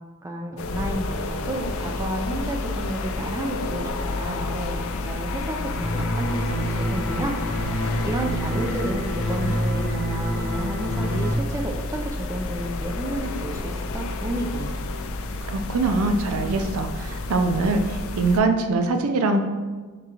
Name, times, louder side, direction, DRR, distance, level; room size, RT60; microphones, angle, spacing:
voice 1, 0.2-7.4 8.0-14.8, right 1 dB, 15° right, 1 dB, 0.3 m, -31 dB
sound 1, 0.6-18.4, left 2 dB, 70° left, 0.4 m, -30 dB
sound 2, 5.8-11.3, equal, 5° left, 1.1 m, -27 dB
voice 2, 15.5-19.4, right 3 dB, 80° right, 6 dB, 0.4 m, -23 dB
4.7 x 3.8 x 2.8 m, 1.4 s
head